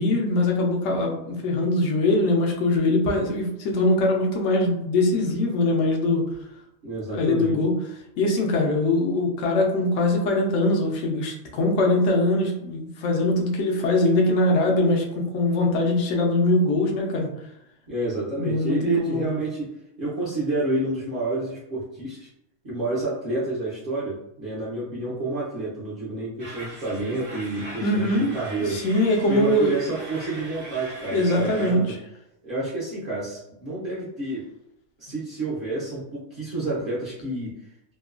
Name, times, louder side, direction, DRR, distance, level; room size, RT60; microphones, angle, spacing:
voice 1, 0.0-6.2 7.1-7.8 8.2-17.3 18.4-19.4 27.8-28.3 28.7-29.8 31.1-32.0, left 2 dB, 70° left, 1 dB, 0.9 m, -22 dB
voice 2, 6.8-7.6 17.9-22.3 22.6-28.8 29.3-32.0 32.4-34.5 35.0-37.7, right 2 dB, 50° right, -8 dB, 0.8 m, -29 dB
sound 1, 26.4-31.7, right 1 dB, 25° right, 0.4 m, -40 dB
2.9 x 2.2 x 2.4 m, 0.82 s
omnidirectional pair, 1.4 m